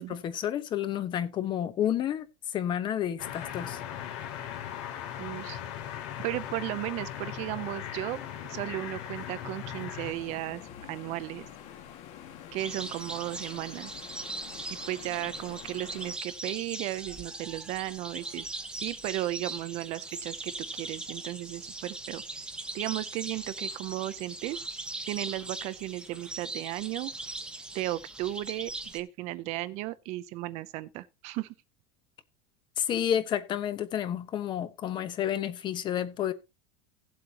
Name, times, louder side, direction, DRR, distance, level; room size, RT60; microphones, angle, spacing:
voice 1, 0.0-3.8 32.8-36.3, left 10 dB, 30° left, 1.1 m, -30 dB
sound 1, 3.2-10.1, left 10 dB, 70° left, 3.0 m, -38 dB
voice 2, 5.2-5.6 6.2-8.2 8.5-10.6 10.9-11.5 12.5-13.9 14.9-18.5 18.7-22.2 22.7-24.6 25.1-27.1 27.7-31.5, right 16 dB, 45° right, 0.6 m, -35 dB
sound 2, 10.1-16.2, left 9 dB, 45° left, 2.0 m, -47 dB
sound 3, 12.6-29.0, right 2 dB, 5° right, 1.0 m, -40 dB
17.0 x 7.8 x 2.9 m
supercardioid pair, 155°, 15 cm